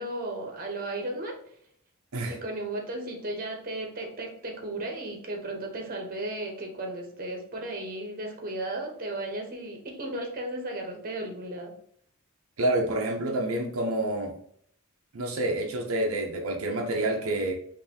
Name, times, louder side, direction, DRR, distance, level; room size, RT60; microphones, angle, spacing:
voice 1, 0.0-1.4 2.3-11.7, right 1 dB, 40° right, 1 dB, 1.0 m, -35 dB
voice 2, 12.6-14.3 15.1-17.5, right 1 dB, 80° right, 0 dB, 0.7 m, -28 dB
5.5 x 2.8 x 2.8 m, 0.65 s
head